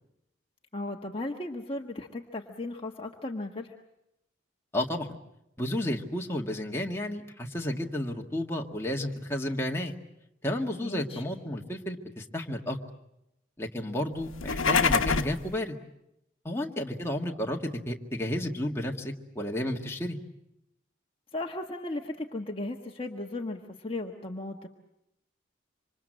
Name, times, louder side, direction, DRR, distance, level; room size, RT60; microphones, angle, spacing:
voice 1, 0.7-3.7 10.8-11.2 21.3-24.7, left 2 dB, 30° left, 2 dB, 1.3 m, -36 dB
voice 2, 4.7-5.1 5.6-10.0 10.4-12.8 13.6-15.8 16.4-17.6 17.9-20.2, left 1 dB, 15° left, 1 dB, 1.8 m, -32 dB
sound 1, 14.3-15.4, left 5 dB, 85° left, 1.1 m, -25 dB
27.0 x 25.5 x 7.7 m, 0.85 s
head